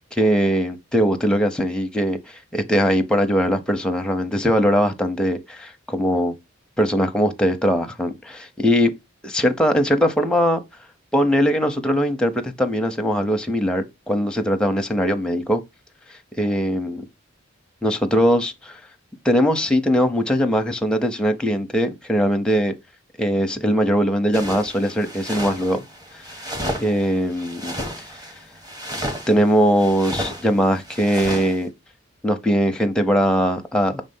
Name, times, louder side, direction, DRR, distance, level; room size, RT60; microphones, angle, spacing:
voice 1, 0.1-2.2 2.5-6.3 6.8-8.9 9.2-10.6 11.1-15.6 16.4-17.0 17.8-18.8 19.2-22.7 23.2-25.8 26.8-27.8 29.3-31.7 32.2-34.0, equal, 5° left, 0.7 m, -20 dB
sound 1, 24.3-31.6, equal, 20° right, 1.2 m, -32 dB
5.9 x 3.3 x 5.4 m
head